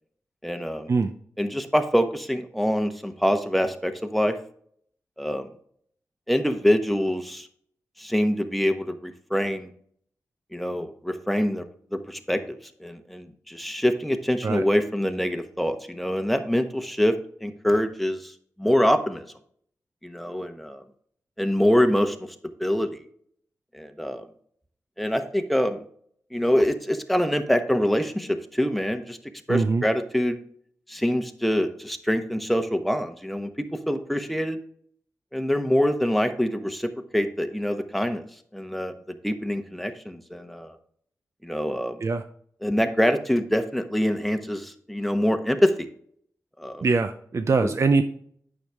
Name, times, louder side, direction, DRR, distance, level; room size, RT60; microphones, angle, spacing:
voice 1, 0.4-0.9 1.4-4.3 5.2-5.5 6.3-7.5 8.0-9.7 10.5-11.6 11.9-17.2 17.4-18.3 18.6-19.2 20.0-20.8 21.4-22.2 22.6-23.0 23.7-24.3 25.0-25.8 26.3-29.2 29.5-30.4 30.9-34.6 35.3-38.2 38.5-40.8 41.4-42.0 42.6-45.9 46.6-46.8 47.6-47.7, equal, ahead, 6 dB, 1.1 m, -25 dB
voice 2, 29.5-29.8 42.0-42.2 46.8-48.0, right 4 dB, 50° right, 9 dB, 0.6 m, -22 dB
9.1 x 6.5 x 3.5 m, 0.62 s
cardioid pair, 60°, 6 cm